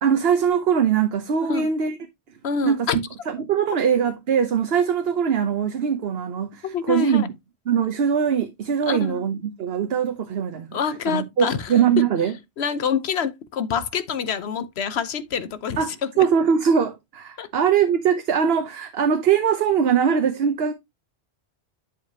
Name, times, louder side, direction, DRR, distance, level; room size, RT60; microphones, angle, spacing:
voice 1, 0.0-2.0 2.6-2.9 3.3-7.3 7.7-12.3 15.8-20.7, right 7 dB, 70° right, 1.0 m, -22 dB
voice 2, 2.4-3.0 6.6-7.3 8.9-9.3 10.7-11.8 12.6-16.3 17.4-17.5, left 7 dB, 80° left, 1.1 m, -26 dB
10.5 x 4.9 x 2.8 m
omnidirectional pair, 1.1 m